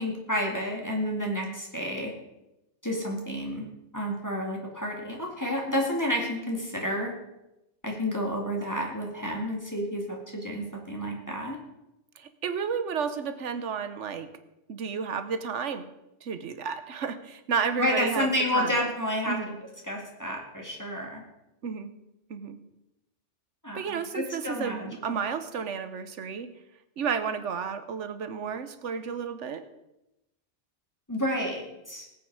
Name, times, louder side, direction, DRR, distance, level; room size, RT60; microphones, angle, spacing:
voice 1, 0.0-2.1 2.8-3.7 3.9-7.1 7.8-11.6 17.8-19.4 19.8-21.2 23.6-25.3 31.1-32.1, equal, 15° left, -1 dB, 2.3 m, -30 dB
voice 2, 12.2-14.3 14.7-15.9 16.2-18.8 19.3-19.6 21.6-21.9 22.3-22.6 23.7-26.5 27.0-29.6, right 6 dB, 75° right, 11 dB, 1.3 m, -32 dB
19.0 x 8.6 x 4.8 m, 0.92 s
omnidirectional pair, 1.2 m